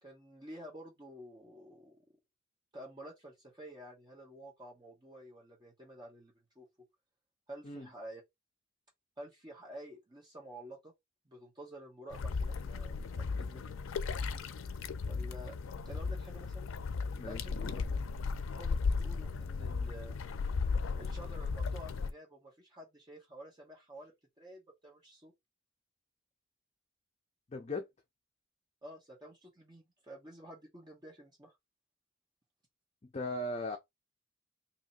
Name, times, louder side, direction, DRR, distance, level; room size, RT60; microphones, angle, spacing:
voice 1, 0.0-2.0 2.7-6.7 7.5-8.2 9.2-10.9 11.2-13.8 14.1-14.4 15.1-16.7 17.2-17.8 18.5-20.2 20.9-25.3 28.8-31.6, right 1 dB, 20° right, 1.1 m, -51 dB
sound 1, 12.1-22.1, left 4 dB, 85° left, 0.4 m, -36 dB
voice 2, 17.2-17.7 27.5-27.8 33.0-33.8, left 2 dB, 35° left, 0.5 m, -38 dB
2.8 x 2.8 x 4.1 m
head